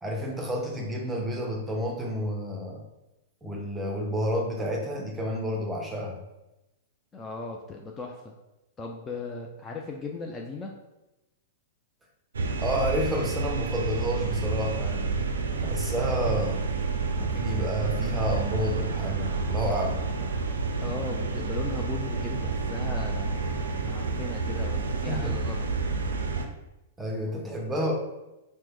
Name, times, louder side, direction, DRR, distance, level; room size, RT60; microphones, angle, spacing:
voice 1, 0.0-2.8 3.4-6.2 12.6-15.1 15.6-16.6 17.2-20.0 25.1-25.4 27.0-27.9, equal, 10° right, 0 dB, 0.7 m, -30 dB
voice 2, 7.1-8.3 8.8-10.7 20.8-23.4 23.8-25.7, left 3 dB, 20° left, 1 dB, 0.3 m, -37 dB
sound 1, 12.3-26.5, right 4 dB, 80° right, 0.3 m, -29 dB
2.9 x 2.1 x 3.4 m, 0.96 s
hypercardioid pair, 105°, 0 cm